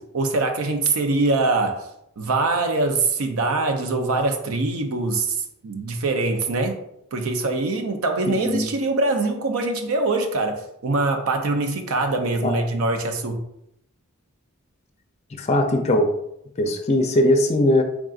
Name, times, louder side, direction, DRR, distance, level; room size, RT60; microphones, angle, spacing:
voice 1, 0.0-1.9 2.2-6.8 7.1-13.4, right 3 dB, 90° right, 5 dB, 0.5 m, -23 dB
voice 2, 15.3-16.1 16.6-17.8, left 1 dB, 30° left, 5 dB, 0.4 m, -19 dB
3.7 x 3.6 x 2.4 m, 0.77 s
head